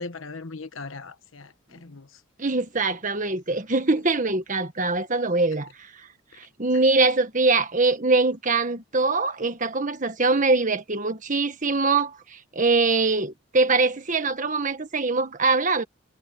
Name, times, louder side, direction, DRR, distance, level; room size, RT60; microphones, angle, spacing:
voice 1, 0.0-2.2, left 3 dB, 75° left, 1.3 m, -39 dB
voice 2, 2.4-5.9 6.4-15.8, right 3 dB, 40° right, 1.6 m, -23 dB
head